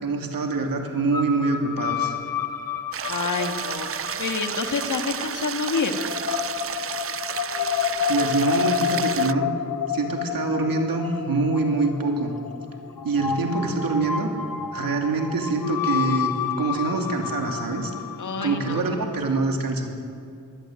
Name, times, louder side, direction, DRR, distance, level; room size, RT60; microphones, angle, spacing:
voice 1, 0.0-2.2 8.1-9.5 9.9-12.3 13.0-14.3 14.7-17.9 18.4-19.9, right 3 dB, 85° right, 3 dB, 2.8 m, -25 dB
sound 1, 1.1-19.3, left 9 dB, 85° left, 1.2 m, -30 dB
sound 2, 2.9-9.3, right 8 dB, 45° right, 0.4 m, -32 dB
voice 2, 3.1-6.0 18.2-18.9, left 4 dB, 60° left, 6 dB, 2.0 m, -28 dB
22.5 x 17.0 x 9.1 m, 2.4 s
wide cardioid pair, 165°, 34 cm